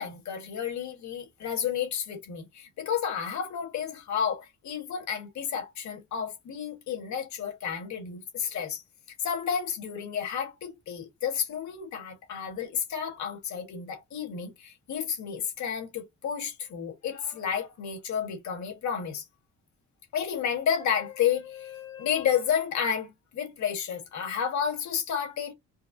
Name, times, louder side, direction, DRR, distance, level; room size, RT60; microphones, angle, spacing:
voice 1, 0.0-8.8 9.2-19.3 20.1-25.5, left 8 dB, 70° left, 1.8 m, -31 dB
4.7 x 2.1 x 2.7 m
cardioid pair, 90°, 30 cm